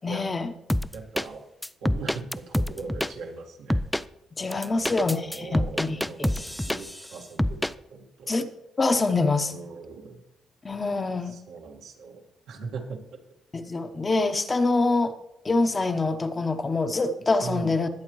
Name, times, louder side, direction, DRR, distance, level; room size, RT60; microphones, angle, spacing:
voice 1, 0.0-0.5 4.4-6.0 8.3-8.5 8.8-9.5 10.6-11.4 13.5-15.1 15.4-17.9, left 3 dB, 30° left, 7 dB, 0.9 m, -25 dB
sound 1, 0.7-1.3 1.6-3.1 3.7-4.0 4.5-7.1 7.4-7.7, left 1 dB, 5° left, 0.3 m, -26 dB
voice 2, 0.9-1.4 1.8-3.8 4.6-8.3 9.5-10.2 11.2-12.2 12.5-13.0 17.4-17.8, right 4 dB, 85° right, 0 dB, 1.9 m, -39 dB
20.5 x 7.9 x 3.1 m, 0.84 s
cardioid pair, 90°, 0 cm